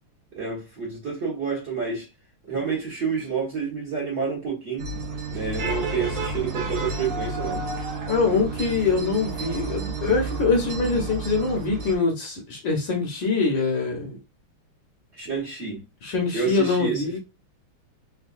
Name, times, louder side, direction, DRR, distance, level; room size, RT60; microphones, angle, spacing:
voice 1, 0.3-2.1 2.4-4.9 5.3-7.6 15.2-15.8 16.3-17.2, right 5 dB, 35° right, 1.3 m, -29 dB
sound 1, 4.8-11.9, right 3 dB, 80° right, 0.7 m, -31 dB
voice 2, 8.1-14.2 16.0-17.2, left 4 dB, 65° left, 1.4 m, -24 dB
3.5 x 2.7 x 2.4 m
omnidirectional pair, 2.4 m